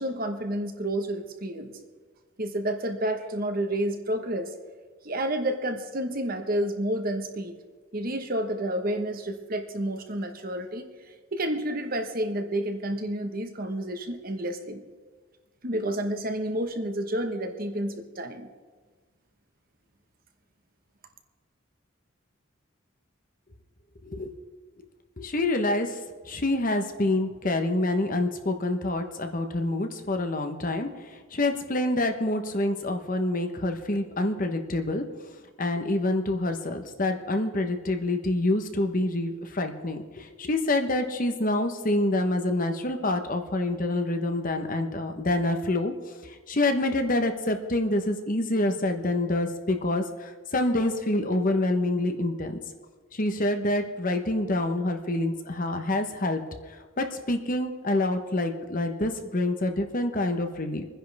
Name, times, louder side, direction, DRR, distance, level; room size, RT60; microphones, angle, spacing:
voice 1, 0.0-1.8 2.4-4.5 5.0-7.5 7.9-10.9 11.3-14.8 15.6-18.5, right 1 dB, 45° right, 5 dB, 1.3 m, -30 dB
voice 2, 24.0-24.3 25.2-26.0 26.2-35.0 35.6-45.9 46.2-52.6 53.1-56.4 56.7-60.8, left 1 dB, 40° left, 6 dB, 1.1 m, -27 dB
26.0 x 10.0 x 3.5 m, 1.4 s
head